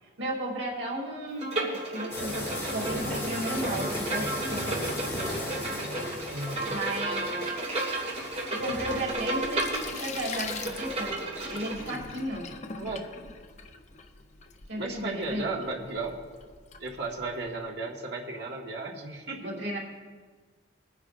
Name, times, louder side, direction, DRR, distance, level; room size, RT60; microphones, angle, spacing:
voice 1, 0.0-4.9 6.7-7.4 8.5-11.1 11.5-12.5 14.7-15.5 19.4-19.8, right 1 dB, 85° right, -2 dB, 2.8 m, -34 dB
Bowed string instrument, 1.4-11.9, right 2 dB, 40° right, 2.6 m, -33 dB
sound 1, 2.1-11.1, left 1 dB, 15° left, 2.9 m, -37 dB
voice 2, 6.3-6.8 12.8-13.1 14.7-16.2 16.8-19.5, right 3 dB, 65° right, -1 dB, 1.8 m, -35 dB
Sink (filling or washing), 8.8-17.6, left 5 dB, 40° left, 0.7 m, -43 dB
22.0 x 9.7 x 2.6 m, 1.5 s
head